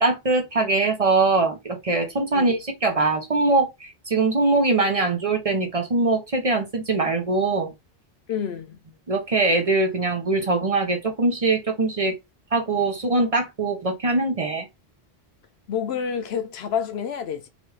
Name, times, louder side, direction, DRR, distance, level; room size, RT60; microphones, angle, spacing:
voice 1, 0.0-7.7 9.1-12.2 12.5-14.7, right 3 dB, 40° right, 0.7 m, -22 dB
voice 2, 8.3-8.8 15.7-17.5, left 7 dB, 85° left, 0.9 m, -28 dB
3.1 x 2.4 x 3.1 m
omnidirectional pair, 1.0 m